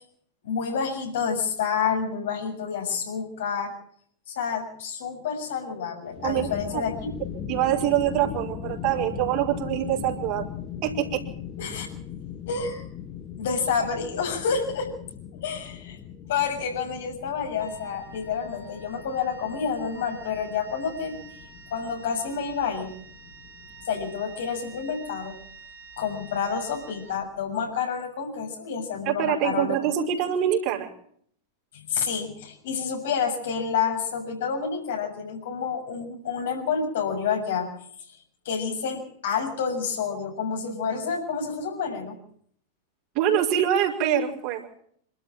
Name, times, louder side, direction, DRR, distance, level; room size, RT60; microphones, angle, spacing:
voice 1, 0.4-3.7 4.3-7.0 11.6-11.9 12.5-12.8 13.4-14.9 15.4-16.0 16.3-21.2 21.7-22.9 23.9-25.4 26.0-29.9 31.7-37.7 38.4-42.2, left 6 dB, 60° left, 2 dB, 7.0 m, -29 dB
sound 1, 6.1-24.9, left 8 dB, 30° left, 2.2 m, -39 dB
voice 2, 6.2-6.8 7.5-10.5 10.8-11.2 29.0-30.9 43.1-44.7, right 10 dB, 40° right, 0 dB, 5.3 m, -25 dB
Wind instrument woodwind instrument, 17.6-27.7, right 3 dB, 70° right, 3.4 m, -48 dB
27.0 x 13.5 x 7.7 m, 0.64 s
figure-of-eight pair, 90°, 0 cm